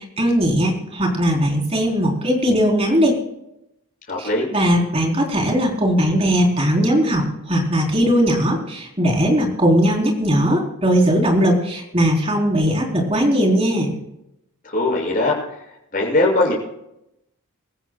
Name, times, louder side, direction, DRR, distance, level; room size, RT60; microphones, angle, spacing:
voice 1, 0.0-3.2 4.2-13.9, equal, 25° right, 0 dB, 3.9 m, -19 dB
voice 2, 4.1-4.5 14.6-15.4 15.9-16.5, left 2 dB, 40° left, -3 dB, 6.7 m, -19 dB
25.0 x 15.5 x 2.3 m, 0.84 s
head